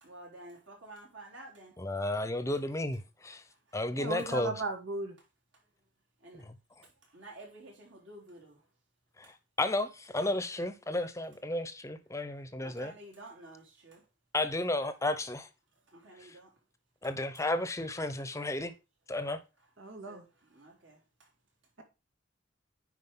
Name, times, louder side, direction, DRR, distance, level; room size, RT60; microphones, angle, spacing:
voice 1, 0.0-1.7 6.2-6.5 7.1-8.6 9.2-9.3 12.6-14.0 15.9-16.5 20.1-21.0, right 1 dB, 70° right, 3.6 m, -51 dB
voice 2, 1.8-3.4 3.7-4.5 6.3-6.5 9.6-12.9 14.3-15.5 17.0-18.7 19.1-19.4, left 1 dB, 15° left, 0.7 m, -33 dB
voice 3, 3.9-5.2 19.8-20.2, right 2 dB, 90° right, 2.3 m, -36 dB
9.8 x 4.8 x 3.7 m
head